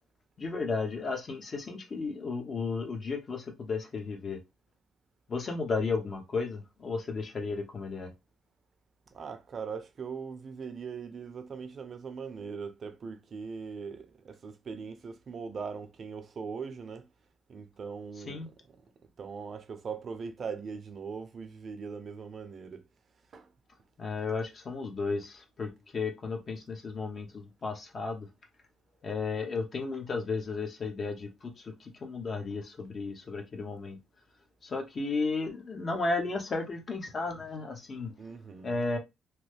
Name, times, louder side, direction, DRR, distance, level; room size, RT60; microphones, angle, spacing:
voice 1, 0.4-4.4 5.3-8.1 18.3-18.5 24.0-28.3 29.0-34.0 34.6-38.1 38.6-39.0, left 4 dB, 45° left, 1.0 m, -34 dB
voice 2, 9.1-17.1 17.5-18.8 19.2-22.9 23.3-23.5 38.2-38.8, right 5 dB, 50° right, 0.6 m, -40 dB
3.0 x 2.1 x 3.3 m
cardioid pair, 90°, 0 cm